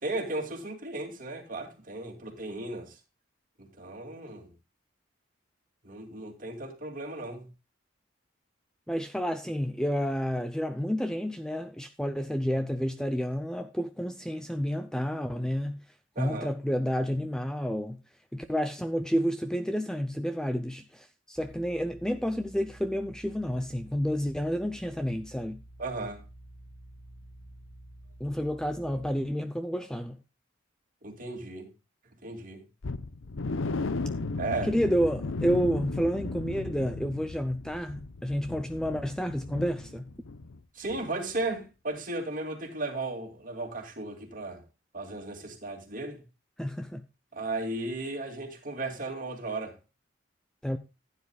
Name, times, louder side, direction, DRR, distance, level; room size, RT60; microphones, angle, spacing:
voice 1, 0.0-3.0 3.6-4.5 5.8-7.5 16.2-16.5 25.8-26.2 31.0-31.7 32.2-32.6 34.4-34.7 40.7-44.6 44.9-46.2 47.3-49.8, right 2 dB, 40° right, 2.5 m, -35 dB
voice 2, 8.9-15.8 16.2-18.0 18.3-25.6 28.2-30.2 34.6-40.1 46.6-47.0 50.6-50.8, equal, 5° left, 0.6 m, -30 dB
sound 1, 21.4-29.0, right 1 dB, 25° right, 2.8 m, -51 dB
sound 2, 32.8-40.6 40.9-41.0 41.5-41.6, left 3 dB, 85° left, 0.7 m, -35 dB
15.0 x 9.7 x 2.3 m
head